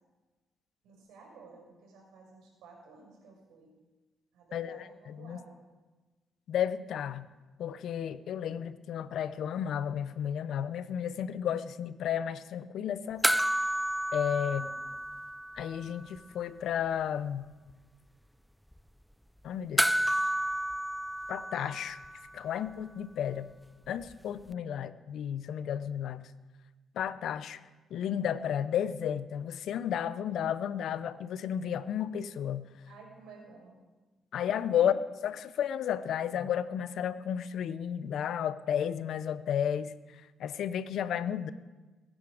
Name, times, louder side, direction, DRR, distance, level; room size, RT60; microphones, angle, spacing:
voice 1, 0.8-3.7 4.3-5.6 14.4-14.8 32.9-33.8 34.7-34.9, right 4 dB, 90° right, -1 dB, 5.6 m, -53 dB
voice 2, 4.5-5.4 6.5-7.3 7.6-13.3 14.1-14.6 15.5-17.5 19.4-20.1 21.3-22.0 22.3-23.5 23.9-26.3 27.0-27.6 27.9-32.7 34.3-34.9 35.2-39.9 40.4-41.5, left 9 dB, 70° left, 15 dB, 0.6 m, -32 dB
sound 1, 13.2-16.2 19.8-22.4 24.5-24.6, equal, ahead, 0.4 m, -31 dB
21.5 x 9.9 x 4.9 m, 1.2 s
cardioid pair, 90°, 0 cm